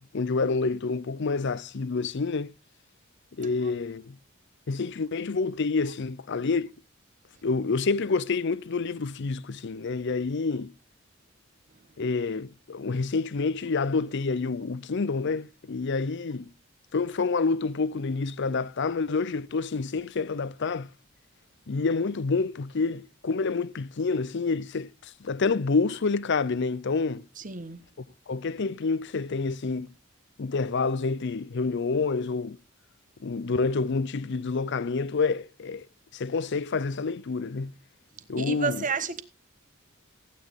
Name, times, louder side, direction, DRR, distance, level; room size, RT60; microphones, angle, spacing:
voice 1, 0.1-2.5 3.4-4.1 4.7-6.7 7.4-10.7 12.0-16.5 16.9-20.9 21.7-24.9 25.2-27.2 28.3-29.9 30.4-32.6 33.2-35.9 36.1-37.7 38.3-38.8, left 4 dB, 60° left, 0.6 m, -28 dB
voice 2, 27.4-27.8 38.4-39.2, right 5 dB, 40° right, 1.2 m, -31 dB
15.5 x 9.3 x 3.8 m
head